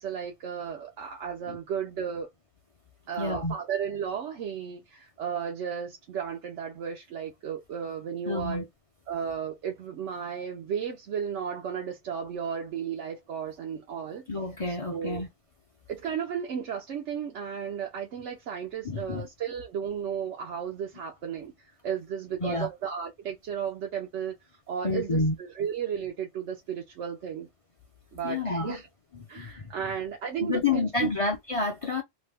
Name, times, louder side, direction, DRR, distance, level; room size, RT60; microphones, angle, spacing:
voice 1, 0.0-2.3 3.1-8.7 9.1-14.2 14.7-15.2 15.9-24.3 24.7-27.5 28.1-28.9 29.3-31.1, right 8 dB, 90° right, 1.0 m, -34 dB
voice 2, 3.2-3.5 8.3-8.6 14.3-15.3 18.8-19.3 22.4-22.7 24.8-25.3 28.2-28.8 29.4-29.7 30.4-32.0, left 3 dB, 40° left, 0.5 m, -29 dB
3.0 x 2.0 x 3.3 m
omnidirectional pair, 1.2 m